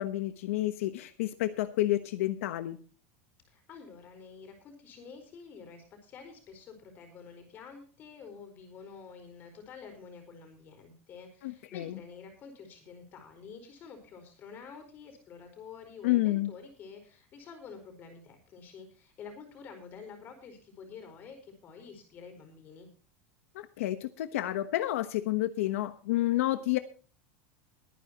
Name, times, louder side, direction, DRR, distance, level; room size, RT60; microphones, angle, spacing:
voice 1, 0.0-2.8 11.4-12.0 16.0-16.5 23.5-26.8, left 15 dB, 80° left, 10 dB, 1.1 m, -30 dB
voice 2, 3.5-22.9, left 5 dB, 25° left, 5 dB, 4.5 m, -49 dB
22.5 x 9.7 x 3.0 m, 0.38 s
supercardioid pair, 180°, 7 cm